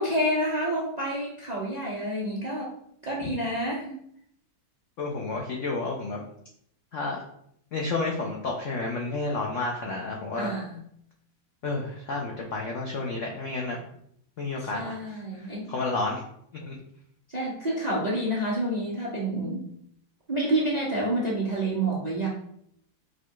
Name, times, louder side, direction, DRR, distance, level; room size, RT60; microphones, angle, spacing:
voice 1, 0.0-2.7 3.0-4.0 10.4-10.8 14.6-15.7 17.3-19.7 20.3-22.3, right 1 dB, 45° right, -5 dB, 0.5 m, -28 dB
voice 2, 5.0-6.2 6.9-7.2 7.7-10.5 11.6-13.8 14.4-16.2 16.5-16.8, left 3 dB, 85° left, -1 dB, 0.6 m, -31 dB
4.6 x 2.3 x 4.5 m, 0.70 s
omnidirectional pair, 2.1 m